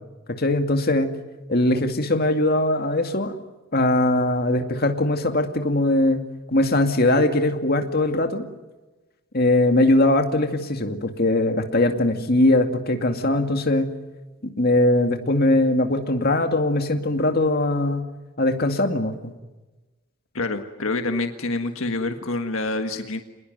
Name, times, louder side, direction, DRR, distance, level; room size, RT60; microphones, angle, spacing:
voice 1, 0.4-1.1 1.5-3.3 3.7-6.2 6.5-8.4 9.3-13.9 14.6-18.1 18.4-19.3, left 1 dB, 45° left, 5 dB, 2.3 m, -21 dB
voice 2, 20.3-23.2, left 2 dB, 70° left, 6 dB, 1.6 m, -27 dB
27.5 x 20.5 x 9.4 m, 1.1 s
head